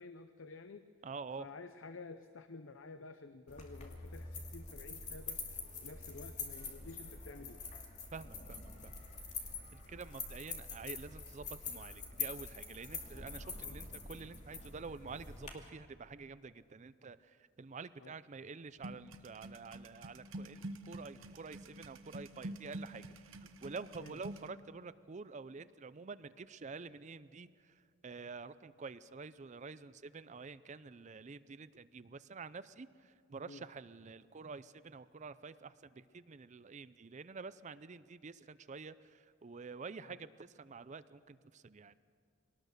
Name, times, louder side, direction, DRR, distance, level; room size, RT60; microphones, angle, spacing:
voice 1, 0.0-0.9 1.4-5.5 5.8-7.6 13.6-13.8 18.0-18.2 24.0-24.2 33.4-33.7 40.0-40.2, left 3 dB, 70° left, 9 dB, 0.7 m, -51 dB
voice 2, 1.0-1.5 8.1-8.9 9.7-27.7 28.0-41.9, right 4 dB, 35° right, 15 dB, 0.5 m, -48 dB
sound 1, 3.5-15.5, left 4 dB, 35° left, 2.6 m, -45 dB
sound 2, 18.8-24.5, right 1 dB, 75° right, 1.0 m, -47 dB
23.0 x 18.5 x 6.7 m, 2.2 s
head